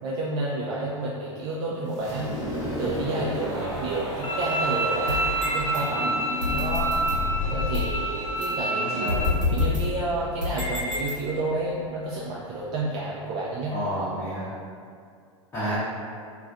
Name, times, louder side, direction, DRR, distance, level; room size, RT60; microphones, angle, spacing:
voice 1, 0.0-2.3 2.8-7.0 7.5-9.2 9.5-13.8, right 2 dB, 40° right, -6 dB, 0.4 m, -30 dB
sound 1, 1.9-7.6, equal, 20° right, 0.9 m, -34 dB
voice 2, 3.4-3.8 8.7-9.3 13.7-14.5 15.5-15.7, equal, 15° left, -14 dB, 0.7 m, -31 dB
Bowed string instrument, 4.2-9.3, right 2 dB, 75° left, 0.5 m, -28 dB
sound 2, 4.9-5.8 6.4-8.0 8.4-8.5 9.1-11.5, left 4 dB, 85° right, 0.7 m, -28 dB
2.3 x 2.3 x 2.5 m, 2.3 s
figure-of-eight pair, 90°, 17 cm